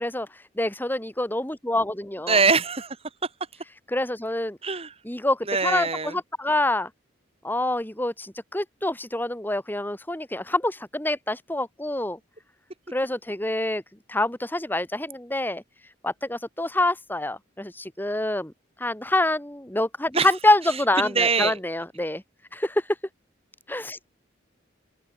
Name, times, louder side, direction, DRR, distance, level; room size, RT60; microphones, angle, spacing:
voice 1, 0.0-2.4 3.9-4.6 5.0-6.9 7.4-12.2 12.9-13.8 14.1-15.6 16.0-18.5 18.8-22.2 22.5-23.0 23.7-24.0, left 1 dB, 10° left, 1.6 m, -26 dB
voice 2, 2.3-3.0 4.6-4.9 5.5-6.1 20.1-20.3 21.0-21.6, right 4 dB, 30° right, 2.1 m, -23 dB
open air
head